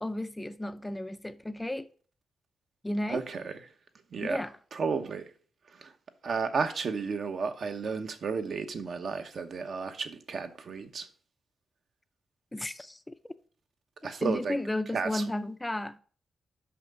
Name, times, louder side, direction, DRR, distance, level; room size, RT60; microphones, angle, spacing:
voice 1, 0.0-1.9 2.8-3.2 4.2-4.5 12.5-13.3 14.2-16.0, left 1 dB, 10° left, 0.4 m, -33 dB
voice 2, 3.1-3.6 4.1-4.4 4.7-5.3 5.7-5.9 6.2-11.1 14.0-14.6 14.9-15.2, right 5 dB, 60° right, 1.0 m, -33 dB
5.8 x 5.6 x 6.7 m
cardioid pair, 110°, 0 cm